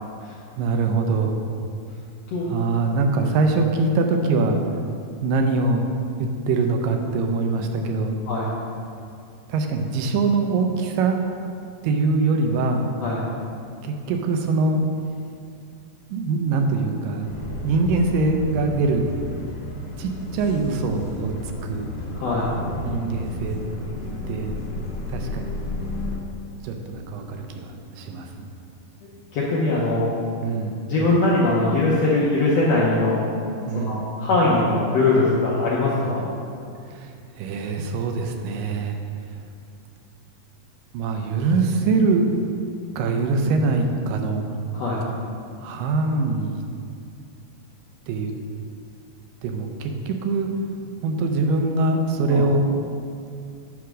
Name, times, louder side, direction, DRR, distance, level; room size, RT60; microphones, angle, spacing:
voice 1, 0.6-1.4 2.5-4.8 5.2-5.9 6.2-8.2 9.5-11.2 11.8-12.9 13.8-14.8 16.1-17.3 17.6-19.0 20.0-21.9 22.8-23.6 24.3-24.6 25.1-25.6 26.6-28.5 30.4-30.9 33.7-34.2 36.8-39.0 39.3-39.4 40.9-42.3 43.0-44.5 45.6-46.6 48.1-48.3 49.4-50.5 51.0-52.7, right 3 dB, 80° right, 4 dB, 2.1 m, -23 dB
sound 1, 17.2-26.2, left 2 dB, 60° left, 1.9 m, -32 dB
voice 2, 22.1-22.5 29.3-30.1 30.9-33.2 33.7-36.2 44.7-45.0 52.3-52.4, left 2 dB, 80° left, -6 dB, 1.4 m, -21 dB
9.3 x 3.5 x 6.2 m, 2.4 s
omnidirectional pair, 4.2 m